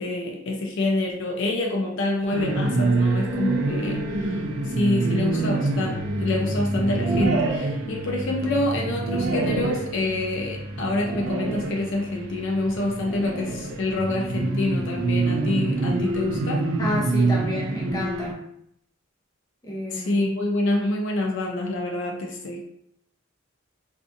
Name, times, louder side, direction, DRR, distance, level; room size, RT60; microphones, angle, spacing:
voice 1, 0.0-4.4 4.7-16.6 19.9-22.6, left 2 dB, 65° left, 0 dB, 0.4 m, -27 dB
sound 1, 2.3-18.3, right 2 dB, 80° right, 0.4 m, -26 dB
voice 2, 16.8-18.4 19.6-20.3, left 1 dB, 20° left, -4 dB, 0.7 m, -30 dB
2.6 x 2.4 x 2.5 m, 0.73 s
head